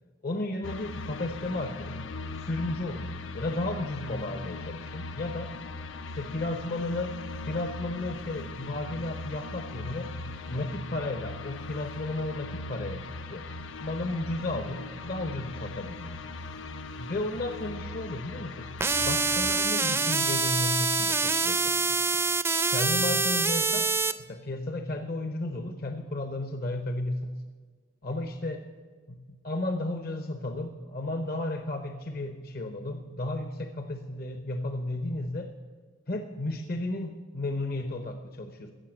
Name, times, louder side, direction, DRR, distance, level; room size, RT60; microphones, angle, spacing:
voice 1, 0.2-2.0 2.3-5.5 6.1-7.1 7.4-10.1 10.5-16.3 17.0-22.0 22.7-23.9 24.2-27.3 28.0-28.6 29.1-35.5 36.1-38.7, left 2 dB, 50° left, 7 dB, 0.9 m, -33 dB
sound 1, 0.6-19.7, left 3 dB, 75° left, 0.6 m, -39 dB
sound 2, 18.8-24.1, right 4 dB, 10° right, 0.4 m, -25 dB
15.5 x 7.3 x 7.7 m, 1.5 s
head